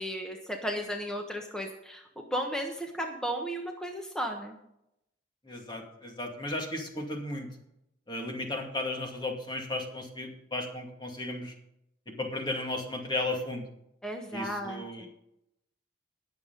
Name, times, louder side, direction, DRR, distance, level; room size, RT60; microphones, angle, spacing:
voice 1, 0.0-4.6 14.0-15.1, equal, 5° left, 2 dB, 1.2 m, -35 dB
voice 2, 5.5-7.5 8.1-11.5 12.2-13.6 14.3-15.1, left 2 dB, 25° left, 2 dB, 2.3 m, -35 dB
19.5 x 7.0 x 4.0 m, 0.80 s
head